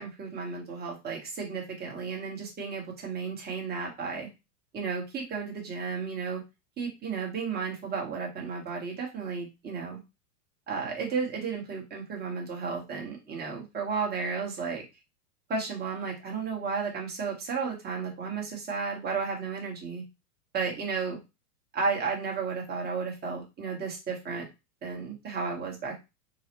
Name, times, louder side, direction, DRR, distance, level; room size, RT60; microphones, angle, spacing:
voice 1, 0.0-4.3 4.7-6.4 6.8-10.0 10.7-14.8 15.5-20.0 20.5-21.2 21.7-24.5 24.8-26.0, right 5 dB, 20° right, -1 dB, 1.3 m, -33 dB
3.9 x 2.3 x 3.0 m, 0.25 s
hypercardioid pair, 125°, 47 cm